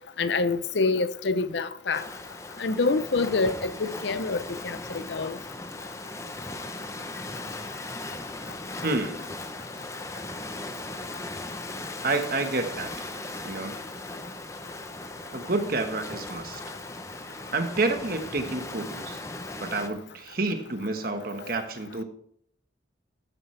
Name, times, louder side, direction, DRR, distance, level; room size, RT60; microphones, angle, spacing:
voice 1, 0.2-2.0 2.6-5.4, left 3 dB, 70° left, 0.7 m, -26 dB
sound 1, 1.9-19.9, left 2 dB, 15° left, 0.7 m, -38 dB
voice 2, 8.8-9.4 12.0-13.1 13.4-13.7 15.3-16.6 17.5-19.2 19.6-22.0, right 2 dB, 50° right, 1.4 m, -29 dB
12.5 x 10.0 x 3.3 m
head